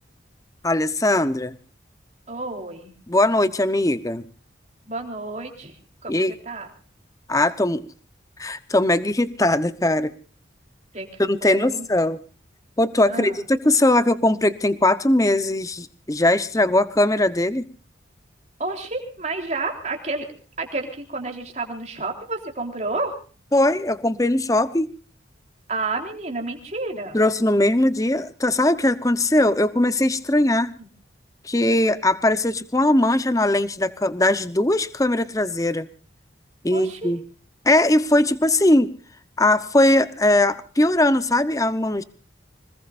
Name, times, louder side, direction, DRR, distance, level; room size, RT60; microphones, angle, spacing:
voice 1, 0.6-1.5 3.1-4.2 6.1-6.3 7.3-7.9 8.4-10.1 11.2-12.2 12.8-17.6 23.5-24.9 27.1-30.7 31.4-35.9 36.6-37.2 37.6-38.9 39.4-42.0, left 1 dB, 15° left, 14 dB, 0.8 m, -20 dB
voice 2, 2.3-3.0 4.9-5.8 6.0-6.7 10.9-11.1 11.4-11.9 13.1-13.4 18.6-20.3 20.6-23.1 25.7-27.2 30.8-30.9 36.7-37.1, right 3 dB, 35° right, 3 dB, 3.6 m, -30 dB
25.5 x 20.0 x 2.5 m, 0.39 s
head